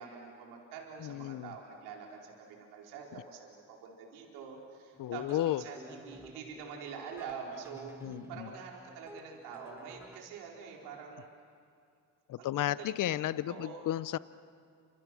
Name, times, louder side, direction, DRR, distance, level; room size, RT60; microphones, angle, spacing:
voice 1, 0.0-11.3 12.4-13.2 13.5-13.9, right 6 dB, 85° right, -1 dB, 4.7 m, -46 dB
voice 2, 1.0-1.5 5.0-5.6 8.0-8.5 12.3-14.2, left 13 dB, 55° left, 17 dB, 0.8 m, -33 dB
sound 1, 4.9-10.2, right 1 dB, 5° right, 2.0 m, -53 dB
30.0 x 27.5 x 6.2 m, 2.4 s
supercardioid pair, 75°, 38 cm